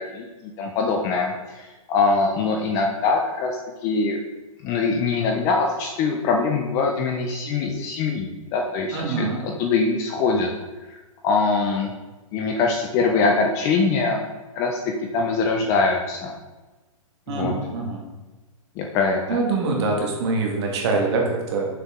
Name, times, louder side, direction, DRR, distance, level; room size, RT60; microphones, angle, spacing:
voice 1, 0.0-3.5 3.8-4.2 4.6-10.5 10.9-11.9 12.3-14.2 14.5-14.8 15.1-16.3 17.3-17.5 18.8-19.4, left 4 dB, 15° left, 2 dB, 0.3 m, -23 dB
voice 2, 8.9-9.4 17.3-18.0 19.3-21.7, right 3 dB, 50° right, 0 dB, 1.5 m, -24 dB
6.5 x 4.6 x 3.6 m, 1.2 s
hypercardioid pair, 155°, 18 cm